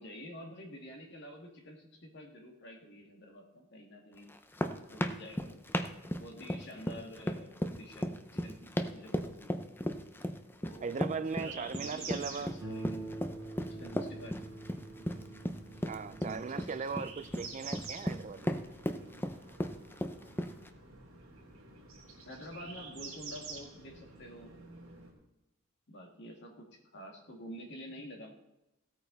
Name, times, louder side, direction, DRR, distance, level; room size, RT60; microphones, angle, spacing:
voice 1, 0.0-4.3 4.9-5.6 6.2-9.6 10.6-13.3 13.7-14.4 16.2-16.4 19.2-19.3 22.2-24.5 25.9-28.3, equal, 55° left, 1 dB, 2.3 m, -49 dB
sound 1, 4.3-20.7, equal, 10° left, 0.6 m, -36 dB
voice 2, 10.8-12.5 15.9-18.5, right 5 dB, 35° right, 14 dB, 0.4 m, -38 dB
sound 2, 11.2-25.1, right 4 dB, 65° right, 3.1 m, -49 dB
Harp, 12.6-21.8 22.6-22.7 23.2-23.3, right 2 dB, 15° right, 3.9 m, -48 dB
16.0 x 8.9 x 4.1 m, 0.94 s
head